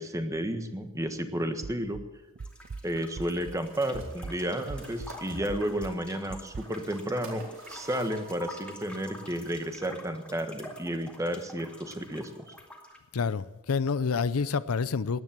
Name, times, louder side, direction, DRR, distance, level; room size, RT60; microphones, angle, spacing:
voice 1, 0.0-2.0 2.8-7.4 7.7-12.5, right 1 dB, 15° right, 1.4 m, -32 dB
sound 1, 1.6-3.7 3.9-6.6, right 4 dB, 45° right, 0.4 m, -42 dB
sound 2, 2.4-13.0, left 1 dB, 5° left, 2.1 m, -47 dB
sound 3, 3.6-9.7, right 1 dB, 65° right, 4.2 m, -49 dB
voice 2, 13.1-15.2, left 5 dB, 80° left, 0.6 m, -28 dB
17.5 x 10.5 x 7.5 m
head